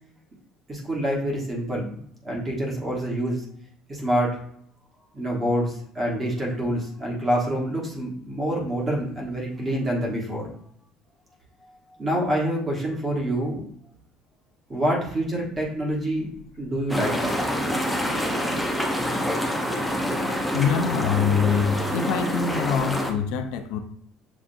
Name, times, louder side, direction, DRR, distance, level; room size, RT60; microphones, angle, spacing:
voice 1, 0.7-1.9 2.2-3.4 3.9-4.4 5.1-10.5 12.0-13.7 14.7-16.3 16.6-17.2, right 1 dB, 20° right, -2 dB, 1.2 m, -26 dB
sound 1, 16.9-23.1, equal, ahead, 0.6 m, -26 dB
voice 2, 20.5-23.8, left 7 dB, 80° left, 7 dB, 0.5 m, -24 dB
7.0 x 2.5 x 2.6 m, 0.65 s
cardioid pair, 170°, 0 cm